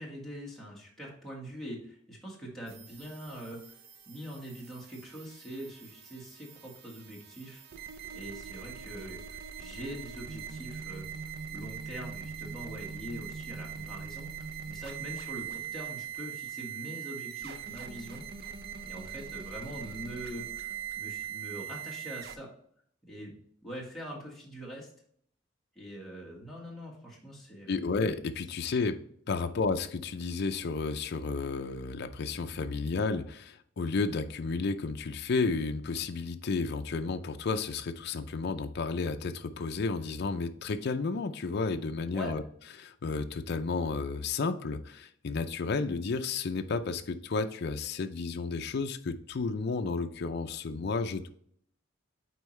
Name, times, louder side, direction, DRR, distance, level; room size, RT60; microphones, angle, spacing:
voice 1, 0.0-3.8 4.0-7.6 8.1-11.1 11.5-14.3 14.7-18.2 18.8-22.5 23.1-23.3 23.6-24.9 25.7-27.8 42.1-42.3, equal, ahead, -5 dB, 1.6 m, -43 dB
sound 1, 2.7-22.4, right 8 dB, 55° right, 0.5 m, -42 dB
voice 2, 27.7-29.0 29.3-42.4 42.8-51.3, left 4 dB, 60° left, 7 dB, 0.5 m, -32 dB
8.1 x 4.5 x 3.2 m, 0.64 s
head